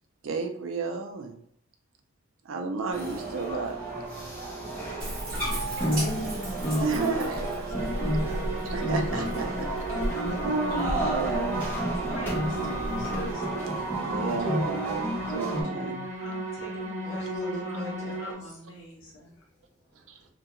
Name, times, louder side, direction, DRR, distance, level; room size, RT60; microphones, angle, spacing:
voice 1, 0.2-1.4 2.4-3.8 6.8-9.7 10.4-11.6 13.9-16.0 20.1-20.2, right 4 dB, 75° right, 5 dB, 0.4 m, -33 dB
sound 1, 2.9-15.6, right 1 dB, 10° left, 0.6 m, -31 dB
voice 2, 4.9-6.8 9.1-9.8 10.3-10.5 11.2-11.4 14.2-15.1 15.4-15.9 17.0-18.2, equal, 35° left, -4 dB, 1.0 m, -38 dB
Bathtub (filling or washing), 5.0-13.3, equal, 45° right, 1.0 m, -35 dB
sound 2, 7.7-18.3, right 2 dB, 30° right, 1.2 m, -36 dB
voice 3, 12.0-13.9 16.2-19.5, left 1 dB, 70° left, -1 dB, 0.7 m, -45 dB
2.3 x 2.2 x 2.8 m, 0.67 s
head